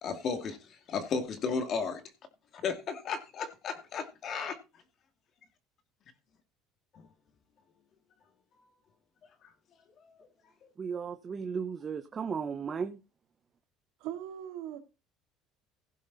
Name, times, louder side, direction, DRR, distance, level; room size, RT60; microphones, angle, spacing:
voice 1, 0.0-2.0 2.6-4.6, left 5 dB, 40° left, 2.3 m, -34 dB
voice 2, 10.8-13.0, right 6 dB, 25° right, 0.9 m, -35 dB
voice 3, 14.0-14.8, right 11 dB, 75° right, 2.9 m, -39 dB
16.5 x 7.2 x 4.1 m
cardioid pair, 150°, 0 cm